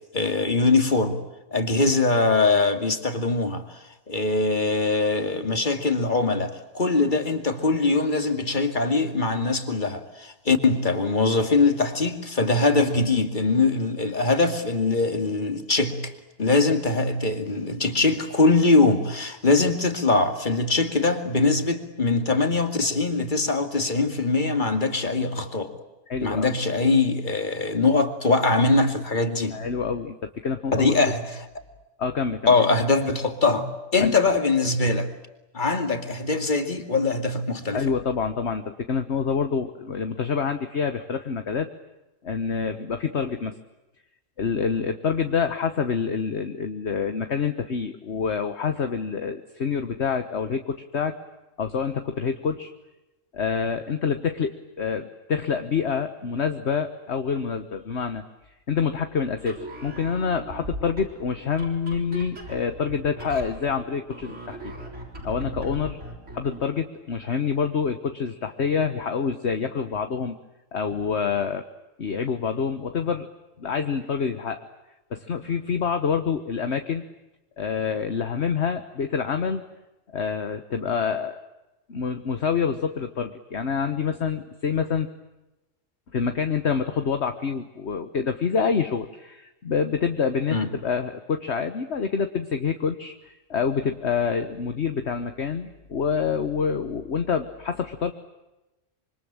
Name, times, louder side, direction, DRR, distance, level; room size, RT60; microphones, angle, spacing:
voice 1, 0.1-1.2 1.5-3.8 4.1-16.1 16.4-25.7 26.2-29.6 30.7-31.3 32.5-35.1 35.5-37.8 90.5-90.7, left 3 dB, 35° left, 7 dB, 2.6 m, -22 dB
voice 2, 26.1-26.5 29.5-30.9 32.0-32.5 34.0-34.3 37.7-41.7 42.2-43.5 44.4-51.2 51.6-52.7 53.3-58.2 58.7-64.6 65.2-66.0 66.3-70.4 70.7-71.6 72.0-73.3 73.6-74.7 75.1-77.0 77.6-79.6 80.1-81.4 81.9-85.1 86.1-98.1, left 6 dB, 60° left, 8 dB, 1.5 m, -27 dB
sound 1, 59.4-66.7, right 1 dB, 65° right, 6.8 m, -39 dB
26.5 x 25.0 x 8.9 m, 1.0 s
omnidirectional pair, 1.3 m